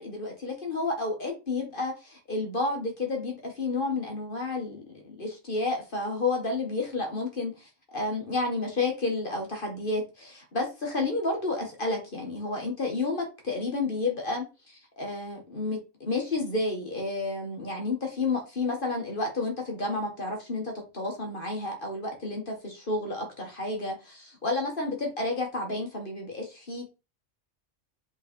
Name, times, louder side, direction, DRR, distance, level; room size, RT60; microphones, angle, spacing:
voice 1, 0.0-26.8, left 3 dB, 45° left, 2.0 m, -31 dB
5.6 x 4.2 x 4.5 m
omnidirectional pair, 1.3 m